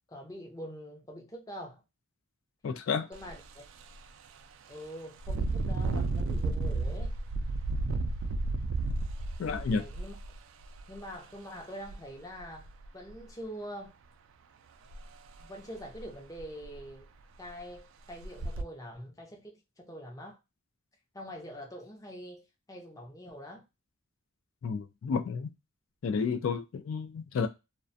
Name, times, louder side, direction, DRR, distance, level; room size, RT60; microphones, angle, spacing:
voice 1, 0.1-1.8 2.9-3.6 4.7-7.1 9.7-10.2 10.9-13.9 15.4-17.1 17.4-20.4 21.1-23.6, equal, 15° left, 0.5 m, -44 dB
voice 2, 2.6-3.1 9.4-9.8 24.6-25.5 26.0-27.5, left 5 dB, 70° left, 0.3 m, -31 dB
Engine, 3.1-3.3 3.8-4.0 5.2-11.0 11.8-12.0 12.4-13.1 14.9-15.0 15.4-15.5 16.0-16.1 16.4-16.9 17.5-17.6 18.2-18.6, right 2 dB, 70° right, 0.3 m, -32 dB
2.4 x 2.2 x 2.5 m
head